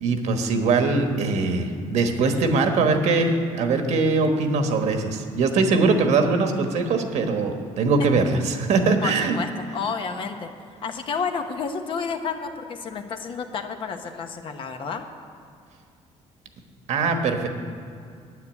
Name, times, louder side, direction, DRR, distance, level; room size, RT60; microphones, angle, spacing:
voice 1, 0.0-9.4 16.9-17.5, right 3 dB, 70° right, 5 dB, 1.3 m, -22 dB
voice 2, 9.0-10.5 10.8-15.0, left 5 dB, 45° left, 6 dB, 1.0 m, -30 dB
9.6 x 9.6 x 8.2 m, 2.2 s
cardioid pair, 150°, 12 cm